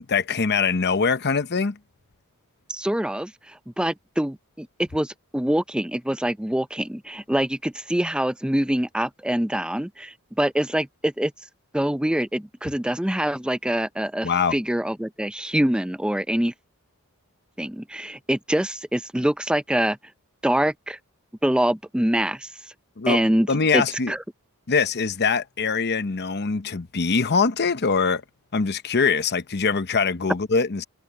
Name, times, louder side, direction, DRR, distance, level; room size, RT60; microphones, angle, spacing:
voice 1, 0.0-1.8 14.2-14.5 23.0-23.2 23.5-24.1 24.7-28.2 28.5-30.8, left 5 dB, 50° left, 0.9 m, -23 dB
voice 2, 2.7-11.3 11.7-16.5 17.6-20.0 20.4-21.0 21.4-22.5 23.1-24.2, right 1 dB, 5° right, 0.5 m, -25 dB
head